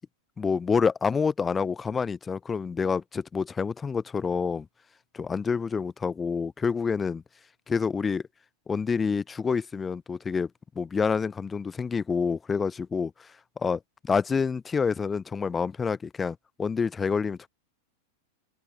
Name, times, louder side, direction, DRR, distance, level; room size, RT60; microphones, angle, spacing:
voice 1, 0.4-4.7 5.1-7.2 7.7-8.2 8.7-10.5 10.7-13.3 13.6-17.5, left 5 dB, 15° left, 1.7 m, -27 dB
figure-of-eight pair, 90°, 0 cm